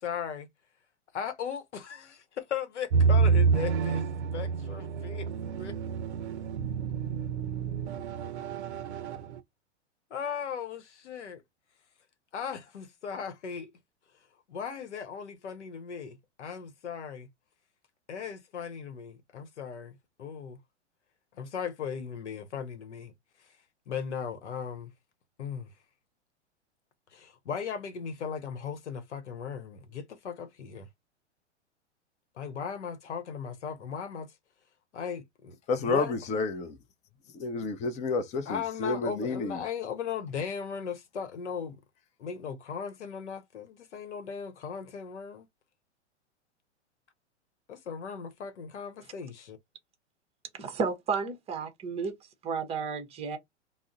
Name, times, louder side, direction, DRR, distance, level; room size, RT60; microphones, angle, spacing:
voice 1, 0.0-0.5 1.1-4.0 4.3-5.8 10.1-11.4 12.3-13.7 14.5-17.3 18.1-20.6 21.3-23.1 23.4-23.5 23.9-24.9 25.4-25.7 27.1-30.9 32.4-34.3 34.9-36.1 38.5-41.8 42.2-45.5 47.7-49.6, left 7 dB, 75° left, 0.8 m, -37 dB
sound 1, 2.9-9.4, right 5 dB, 70° right, 0.5 m, -28 dB
voice 2, 35.7-36.8 37.3-39.6, left 3 dB, 20° left, 0.5 m, -30 dB
voice 3, 50.6-52.2 52.4-53.4, right 5 dB, 15° right, 0.7 m, -32 dB
2.4 x 2.0 x 3.7 m
hypercardioid pair, 105°, 35 cm